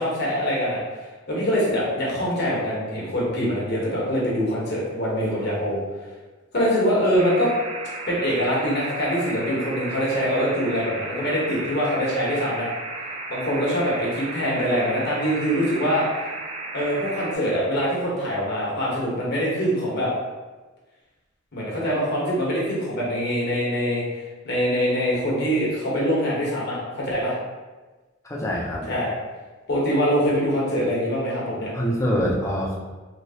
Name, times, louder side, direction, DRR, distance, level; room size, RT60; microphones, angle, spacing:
voice 1, 0.0-5.8 6.5-7.5 8.1-12.7 13.3-16.0 16.7-20.1 21.5-24.0 24.4-27.3 28.9-29.1 29.7-31.7, equal, 55° left, -5 dB, 1.1 m, -24 dB
sound 1, 7.1-17.3, right 3 dB, 30° right, 0.3 m, -34 dB
voice 2, 28.3-28.9 31.7-32.7, equal, 15° left, -4 dB, 0.6 m, -24 dB
3.2 x 2.9 x 2.8 m, 1.3 s
head